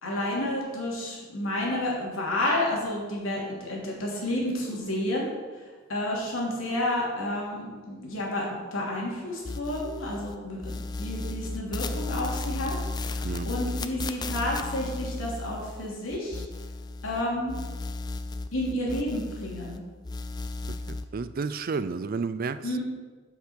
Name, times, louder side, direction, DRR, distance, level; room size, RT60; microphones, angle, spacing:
voice 1, 0.0-5.6 5.9-16.4 17.0-17.6 18.5-19.8 22.6-22.8, left 1 dB, 90° left, -3 dB, 2.8 m, -30 dB
sound 1, 9.5-10.4 10.6-17.2 17.5-19.8 20.0-21.0, left 2 dB, 20° left, 0.4 m, -34 dB
voice 2, 20.7-22.8, right 4 dB, 45° right, 13 dB, 0.4 m, -32 dB
8.3 x 5.9 x 6.3 m, 1.4 s
head